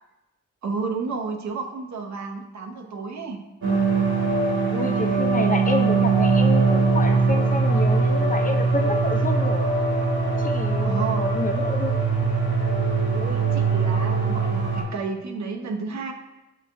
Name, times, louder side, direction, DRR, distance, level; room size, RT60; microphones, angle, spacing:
voice 1, 0.6-3.4 10.8-11.3 13.1-16.1, right 4 dB, 65° right, 3 dB, 0.6 m, -31 dB
sound 1, 3.6-14.8, right 4 dB, 85° right, 1.5 m, -21 dB
voice 2, 4.7-9.7 10.2-12.0, left 2 dB, 30° left, 4 dB, 0.5 m, -29 dB
6.7 x 2.9 x 2.5 m, 0.98 s
cardioid pair, 50°, 30 cm